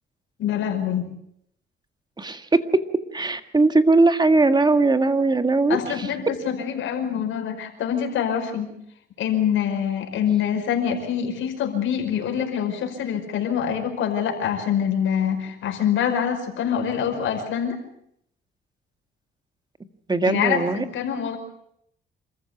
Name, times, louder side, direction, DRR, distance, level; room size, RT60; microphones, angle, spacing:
voice 1, 0.4-1.1 5.7-8.7 9.2-17.8 20.2-21.4, left 8 dB, 80° left, 4 dB, 5.3 m, -25 dB
voice 2, 2.2-2.5 3.1-5.8 20.1-20.8, right 3 dB, 20° right, 9 dB, 1.9 m, -19 dB
27.5 x 14.5 x 8.1 m, 0.74 s
cardioid pair, 90°, 20 cm